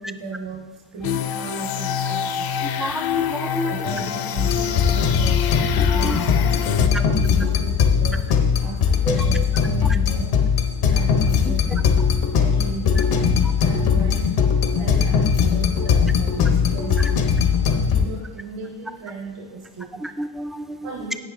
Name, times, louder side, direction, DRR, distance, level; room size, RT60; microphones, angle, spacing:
voice 1, 0.0-3.1 3.4-11.8 12.3-14.4 14.7-20.0 20.8-21.2, right 3 dB, 70° right, -2 dB, 3.6 m, -36 dB
sound 1, 1.0-6.9, left 8 dB, 50° left, 0.6 m, -26 dB
voice 2, 2.6-3.8 5.8-6.2 9.1-9.2 11.5-11.6 14.7-14.8 20.0-20.8, right 1 dB, ahead, 8 dB, 0.4 m, -30 dB
sound 2, 4.4-18.1, left 6 dB, 85° left, 1.2 m, -20 dB
16.5 x 5.9 x 3.7 m, 1.2 s
cardioid pair, 100°, 48 cm